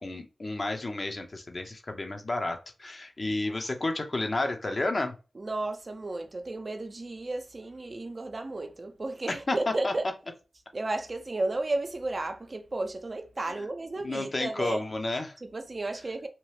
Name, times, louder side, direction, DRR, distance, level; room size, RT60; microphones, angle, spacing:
voice 1, 0.0-5.1 9.5-9.9 14.0-15.3, left 2 dB, 50° left, 0.7 m, -31 dB
voice 2, 5.4-10.0 10.7-14.8 15.4-16.3, right 2 dB, 50° right, 0.5 m, -33 dB
2.9 x 2.3 x 3.2 m
cardioid pair, 40°, 0 cm